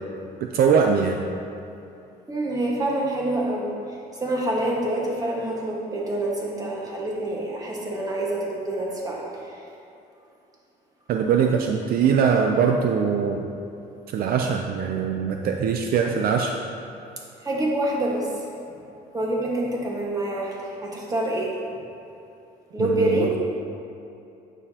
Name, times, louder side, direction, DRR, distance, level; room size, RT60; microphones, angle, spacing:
voice 1, 0.4-1.2 11.1-13.5 14.1-16.5 22.8-23.3, right 6 dB, 60° right, 3 dB, 0.5 m, -22 dB
voice 2, 2.3-3.7 4.2-9.4 17.4-18.4 19.1-21.5 22.7-23.4, right 1 dB, 20° right, -3 dB, 1.5 m, -26 dB
9.0 x 6.9 x 2.9 m, 2.7 s
cardioid pair, 110°, 17 cm